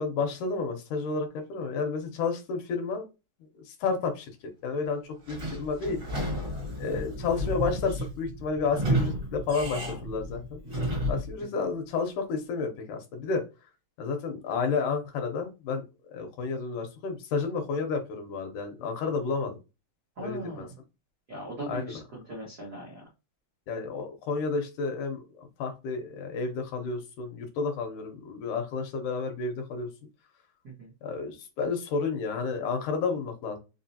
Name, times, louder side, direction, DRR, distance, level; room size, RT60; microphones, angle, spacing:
voice 1, 0.0-3.1 3.7-4.3 4.6-6.0 6.8-10.6 11.1-13.4 14.0-15.8 16.1-19.6 20.2-20.7 21.7-22.0 23.7-29.9 31.0-33.6, left 4 dB, 75° left, 4 dB, 2.2 m, -31 dB
Sliding door / Squeak, 5.2-11.3, equal, 40° right, 1.1 m, -32 dB
voice 2, 20.2-20.7 21.3-23.0 30.6-30.9, right 1 dB, 85° right, -3 dB, 0.8 m, -40 dB
5.0 x 3.1 x 2.7 m, 0.27 s
omnidirectional pair, 3.9 m